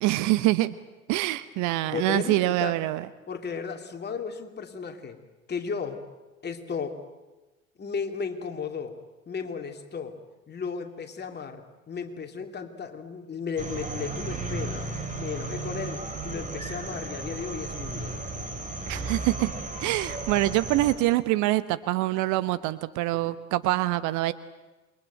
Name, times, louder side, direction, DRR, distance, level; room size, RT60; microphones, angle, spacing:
voice 1, 0.0-0.7 1.1-3.1 18.9-19.5 19.8-24.3, right 17 dB, 45° right, 14 dB, 1.0 m, -25 dB
voice 2, 1.8-2.7 3.3-5.2 5.5-6.0 6.4-7.0 7.8-9.0 9.3-10.2 10.5-14.9 15.2-18.5 23.1-23.3, left 5 dB, 25° left, 4 dB, 2.9 m, -35 dB
sound 1, 13.6-20.9, right 3 dB, 20° right, 5.0 m, -34 dB
28.0 x 22.5 x 9.1 m, 1.1 s
figure-of-eight pair, 75°, 41 cm